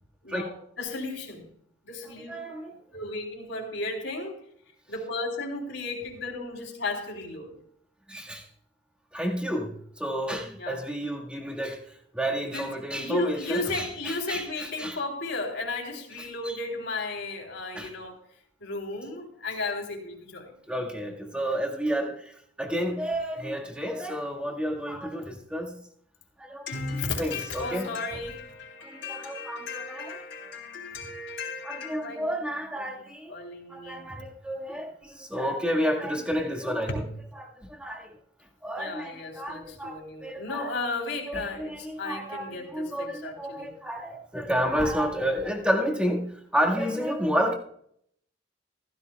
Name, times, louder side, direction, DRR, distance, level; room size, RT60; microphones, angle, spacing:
voice 1, 0.2-1.5 1.8-2.4 2.9-4.4 4.9-7.6 10.6-10.9 12.5-18.2 18.6-20.8 26.7-32.4 32.7-34.0 38.8-43.7, left 3 dB, 70° left, 3.5 m, -35 dB
voice 2, 2.3-2.8 8.1-8.5 9.1-11.8 12.1-15.0 16.2-16.6 17.7-17.9 20.7-25.8 26.4-26.7 27.2-27.9 28.8-30.2 31.6-33.3 33.7-37.1 37.4-38.1 38.6-40.7 41.3-47.5, equal, 5° right, 1.8 m, -31 dB
15.5 x 15.0 x 2.3 m
head